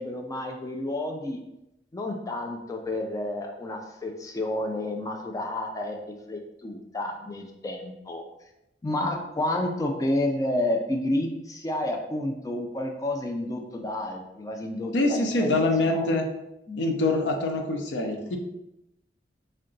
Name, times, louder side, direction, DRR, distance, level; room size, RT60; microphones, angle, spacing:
voice 1, 0.0-1.4 1.9-8.2 8.8-15.5 15.8-16.1 16.7-16.8, left 1 dB, 20° left, 2 dB, 0.3 m, -30 dB
voice 2, 14.9-16.3 16.8-18.4, left 2 dB, 80° left, 4 dB, 0.5 m, -24 dB
3.7 x 2.2 x 3.8 m, 0.88 s
head